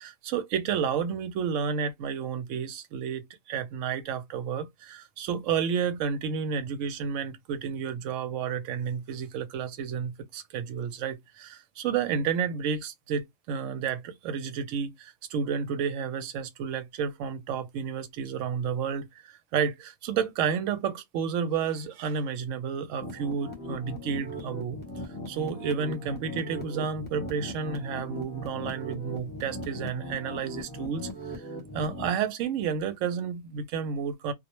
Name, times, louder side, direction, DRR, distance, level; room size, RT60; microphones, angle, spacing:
voice 1, 0.0-24.8 25.3-31.4 31.7-34.3, right 7 dB, 75° right, 0.9 m, -31 dB
sound 1, 23.0-32.1, equal, 10° left, 0.7 m, -39 dB
2.4 x 2.0 x 2.9 m
omnidirectional pair, 1.4 m